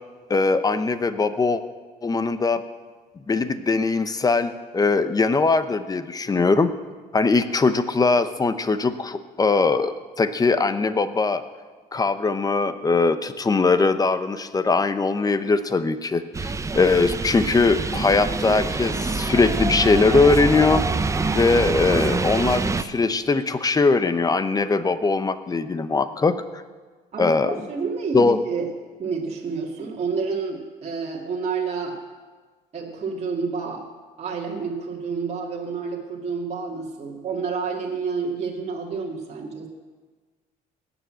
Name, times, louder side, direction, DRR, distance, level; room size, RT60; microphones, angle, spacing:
voice 1, 0.3-1.6 2.0-2.6 3.3-6.7 7.1-11.4 11.9-20.8 21.3-26.6 27.2-27.5 28.1-28.4, left 4 dB, 20° left, 12 dB, 0.8 m, -21 dB
sound 1, 16.3-22.8, right 3 dB, 20° right, 0.6 m, -25 dB
voice 2, 27.1-28.7 29.0-32.0 32.7-33.8 34.2-39.7, right 5 dB, 40° right, -2 dB, 2.1 m, -29 dB
18.5 x 7.1 x 7.6 m, 1.4 s
cardioid pair, 110°, 17 cm